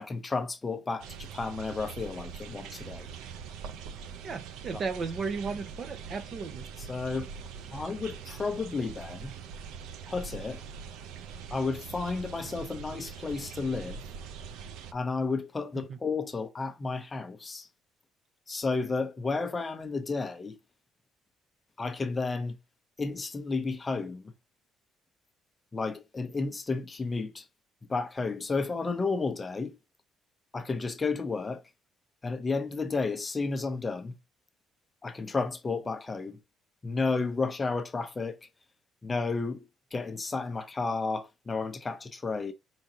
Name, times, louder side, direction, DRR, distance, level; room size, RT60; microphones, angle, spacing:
voice 1, 0.0-3.1 4.7-4.8 6.8-7.3 7.7-9.3 10.1-10.6 11.5-14.0 14.9-17.7 18.5-20.6 21.8-22.6 23.0-24.3 25.7-27.5 27.9-29.7 30.5-31.6 32.2-34.1 35.0-36.4 36.8-38.4 39.0-42.5, left 4 dB, 15° left, 0.6 m, -32 dB
sound 1, 1.0-14.9, right 6 dB, 85° right, 0.6 m, -43 dB
voice 2, 4.2-6.7, right 4 dB, 35° right, 0.7 m, -34 dB
4.9 x 3.8 x 2.7 m
cardioid pair, 170°, 0 cm